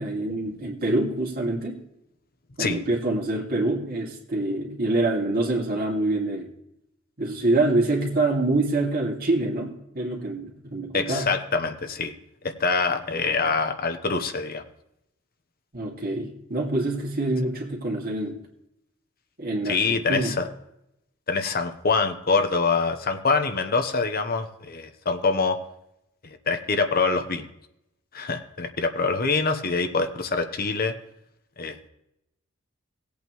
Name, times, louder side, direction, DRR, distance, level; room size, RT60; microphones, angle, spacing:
voice 1, 0.0-1.8 2.6-6.5 7.2-11.3 15.7-18.4 19.4-20.3, right 2 dB, 45° right, 0 dB, 2.2 m, -26 dB
voice 2, 10.9-12.1 12.4-14.6 19.7-20.5 21.3-25.6 26.5-27.4 28.1-30.9 31.6-31.9, left 4 dB, 45° left, 7 dB, 1.0 m, -25 dB
18.5 x 8.5 x 3.1 m, 0.82 s
head